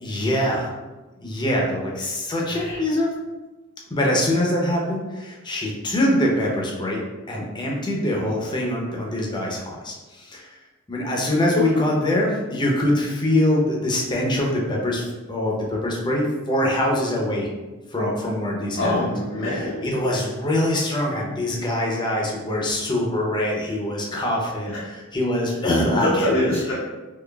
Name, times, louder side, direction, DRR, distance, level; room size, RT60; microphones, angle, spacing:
voice 1, 0.0-0.7 1.2-3.1 3.9-7.0 7.3-10.6 10.9-17.5 17.9-18.9 19.8-24.7 25.1-26.6, left 1 dB, 20° left, -1 dB, 0.6 m, -23 dB
voice 2, 2.5-2.8 8.2-8.4 11.6-11.8 18.8-19.8 24.7-24.8 25.6-26.7, left 1 dB, 60° left, -7 dB, 0.6 m, -25 dB
3.8 x 3.0 x 2.3 m, 1.2 s
head